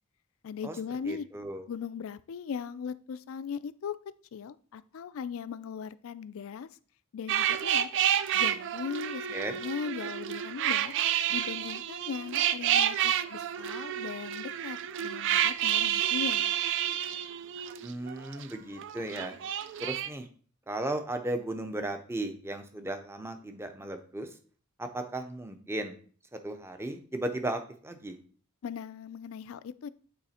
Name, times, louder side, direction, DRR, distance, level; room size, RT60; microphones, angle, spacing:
voice 1, 0.4-1.3 1.7-4.0 4.3-6.7 7.1-7.9 8.3-10.9 11.3-16.5 28.6-29.9, left 6 dB, 65° left, 16 dB, 0.4 m, -38 dB
voice 2, 1.0-1.7 9.3-9.6 17.8-19.4 19.8-20.3 20.7-24.3 24.8-25.9 26.4-28.2, right 1 dB, 10° right, 7 dB, 0.6 m, -35 dB
sound 1, 7.3-18.4 18.8-20.1, right 10 dB, 60° right, 0.4 m, -29 dB
8.6 x 3.2 x 4.2 m, 0.43 s
head